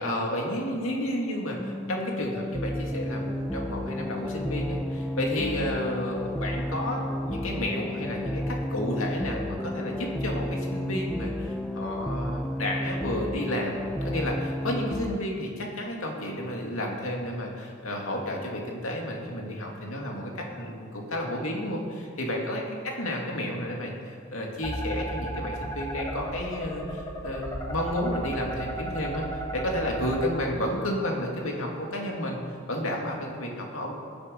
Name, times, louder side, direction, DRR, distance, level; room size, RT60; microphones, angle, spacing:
voice 1, 0.0-32.4 32.7-33.9, left 1 dB, 70° left, -1 dB, 2.6 m, -31 dB
sound 1, 1.6-15.2, left 1 dB, ahead, 0.4 m, -32 dB
sound 2, 24.6-30.2, right 1 dB, 15° left, 1.5 m, -34 dB
19.0 x 9.6 x 5.4 m, 2.3 s
head